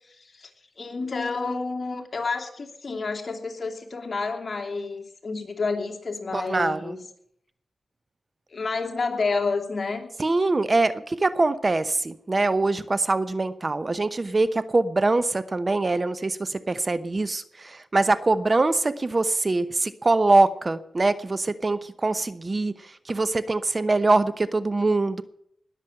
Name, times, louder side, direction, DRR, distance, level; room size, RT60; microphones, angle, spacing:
voice 1, 0.2-0.5 0.8-7.0 8.5-10.1, left 4 dB, 50° left, 2 dB, 2.9 m, -29 dB
voice 2, 6.3-6.9 10.2-22.7 23.1-25.2, right 2 dB, 40° right, 13 dB, 0.9 m, -23 dB
20.0 x 7.4 x 8.7 m, 0.72 s
cardioid pair, 65°, 0 cm